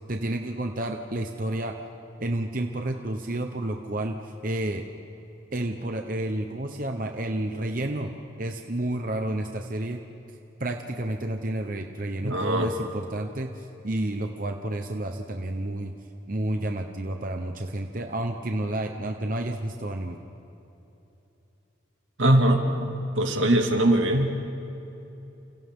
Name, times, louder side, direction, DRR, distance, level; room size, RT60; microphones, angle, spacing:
voice 1, 0.1-1.8 2.2-4.9 5.5-8.1 8.4-10.0 10.6-15.9 16.3-20.2, right 1 dB, 45° right, 4 dB, 1.0 m, -30 dB
voice 2, 12.2-12.7 22.2-24.3, right 1 dB, 85° right, 2 dB, 2.4 m, -22 dB
29.5 x 28.0 x 3.8 m, 3.0 s
head